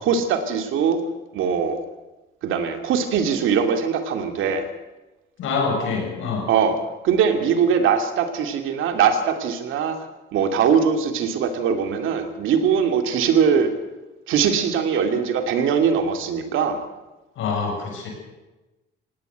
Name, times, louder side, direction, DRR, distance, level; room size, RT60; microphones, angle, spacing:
voice 1, 0.0-1.0 1.3-1.8 2.4-4.7 6.5-6.8 7.0-10.0 10.3-13.7 14.3-16.8, right 7 dB, 85° right, 7 dB, 2.5 m, -21 dB
voice 2, 5.4-6.5 17.4-18.1, left 4 dB, 85° left, 2 dB, 7.1 m, -25 dB
18.0 x 18.0 x 8.0 m, 1.1 s
cardioid pair, 90°, 20 cm